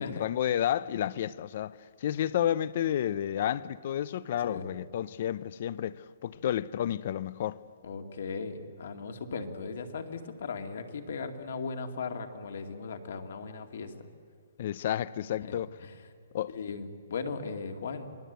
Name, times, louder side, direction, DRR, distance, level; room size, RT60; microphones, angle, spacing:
voice 1, 0.0-7.6 14.6-15.7 16.3-16.5, left 11 dB, 40° left, 0.5 m, -31 dB
voice 2, 7.8-13.9 15.4-15.9 16.5-18.2, left 4 dB, 60° left, 2.3 m, -38 dB
27.0 x 20.0 x 8.1 m
hypercardioid pair, 175°, 0 cm